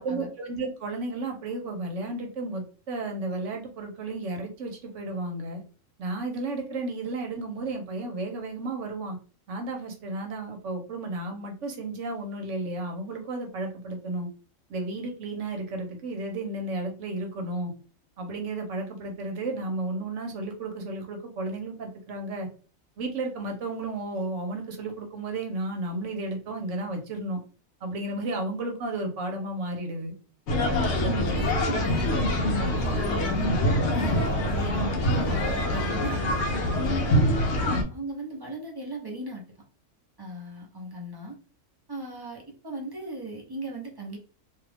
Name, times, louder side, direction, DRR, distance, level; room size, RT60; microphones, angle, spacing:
voice 1, 0.0-5.6 6.0-9.2 9.5-14.3 14.7-17.7 18.2-22.5 23.0-27.4 27.8-30.1 37.5-37.9, right 2 dB, 65° right, 3 dB, 1.1 m, -33 dB
sound 1, 30.5-37.8, left 1 dB, 60° left, 0.8 m, -25 dB
voice 2, 31.2-32.2 32.6-37.1 37.9-39.4 40.2-41.4 41.9-44.2, right 2 dB, 25° right, -1 dB, 0.6 m, -38 dB
2.7 x 2.4 x 3.4 m, 0.37 s
omnidirectional pair, 1.4 m